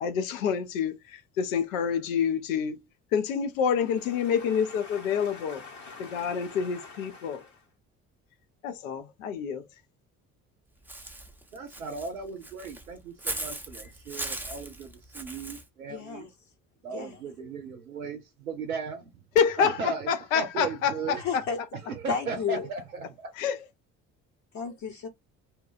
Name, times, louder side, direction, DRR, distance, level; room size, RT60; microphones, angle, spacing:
voice 1, 0.0-2.8 3.1-5.6 6.0-7.4 8.6-9.6 19.4-21.4 23.4-23.6, left 7 dB, 75° left, 0.6 m, -27 dB
voice 2, 4.2-7.5 15.9-16.3 16.9-17.2 21.2-21.6 22.1-22.7 24.5-25.1, left 6 dB, 45° left, 0.9 m, -36 dB
Walk footsteps / Bird, 10.9-15.6, right 1 dB, 5° right, 0.6 m, -38 dB
voice 3, 11.5-16.3 16.8-19.1 19.6-20.1 20.3-21.2 21.9-23.3, right 4 dB, 85° right, 0.5 m, -36 dB
2.8 x 2.2 x 2.4 m
figure-of-eight pair, 50°, 41 cm